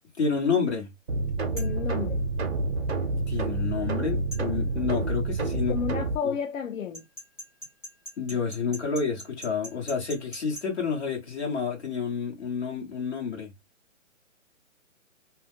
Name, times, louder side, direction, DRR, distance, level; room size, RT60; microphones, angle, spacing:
voice 1, 0.2-0.9 3.3-5.7 6.2-6.3 8.2-13.5, left 5 dB, 55° left, 1.5 m, -29 dB
sound 1, 1.1-6.1, right 3 dB, 50° right, 0.7 m, -28 dB
voice 2, 1.5-2.2 5.7-7.1, left 7 dB, 80° left, 0.6 m, -32 dB
sound 2, 1.6-1.8 4.3-4.5 6.9-10.7, equal, 20° left, 0.9 m, -41 dB
2.8 x 2.1 x 3.4 m
hypercardioid pair, 180°, 40 cm